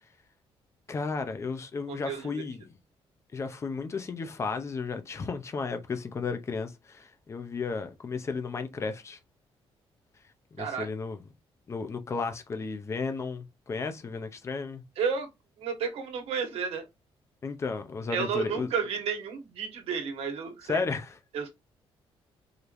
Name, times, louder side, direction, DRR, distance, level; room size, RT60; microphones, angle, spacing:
voice 1, 0.9-2.8 3.3-9.2 10.6-11.2 11.7-14.8 17.4-18.7 20.6-21.2, left 4 dB, 25° left, 0.6 m, -33 dB
voice 2, 1.9-2.3 10.6-10.9 15.0-15.3 15.6-16.8 18.1-20.8 21.3-21.5, right 6 dB, 75° right, 1.4 m, -32 dB
4.9 x 3.1 x 2.6 m
cardioid pair, 170°, 10 cm